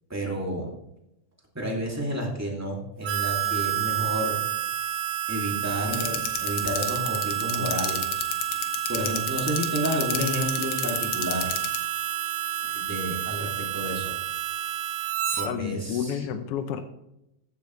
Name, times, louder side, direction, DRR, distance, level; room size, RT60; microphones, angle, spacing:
voice 1, 0.1-0.7 1.5-4.4 5.3-8.0 8.9-11.5 12.7-14.1 15.4-16.3, right 1 dB, 5° right, -1 dB, 1.9 m, -30 dB
Harmonica, 3.0-15.5, right 12 dB, 70° right, 1.6 m, -29 dB
sound 1, 5.9-11.8, left 11 dB, 60° left, 1.7 m, -28 dB
voice 2, 15.4-16.8, left 8 dB, 80° left, 8 dB, 1.3 m, -30 dB
14.5 x 10.0 x 3.2 m, 0.84 s
omnidirectional pair, 3.5 m